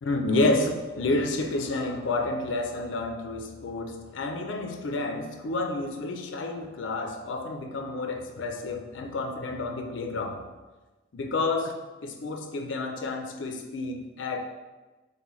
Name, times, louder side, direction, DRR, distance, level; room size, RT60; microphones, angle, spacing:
voice 1, 0.0-10.5 11.1-11.7 12.0-14.4, left 2 dB, 70° left, 4 dB, 0.4 m, -30 dB
5.4 x 2.1 x 3.0 m, 1.2 s
head